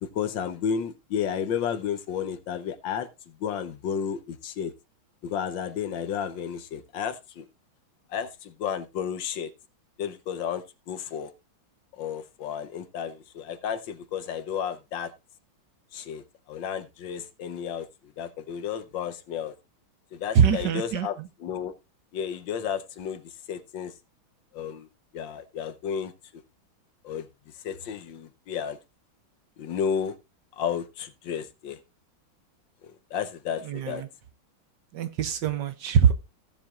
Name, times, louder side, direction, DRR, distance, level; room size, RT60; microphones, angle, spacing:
voice 1, 0.0-4.7 5.2-7.4 8.1-9.5 10.0-11.3 11.9-15.1 15.9-19.5 20.1-21.7 22.1-23.9 24.5-24.9 25.1-26.1 27.0-27.3 27.6-28.8 29.6-30.2 30.5-31.8 32.8-34.0, left 8 dB, 70° left, 1.5 m, -32 dB
voice 2, 20.3-21.1 33.7-34.1 34.9-36.1, right 8 dB, 65° right, 1.3 m, -23 dB
16.5 x 7.4 x 2.4 m
omnidirectional pair, 2.3 m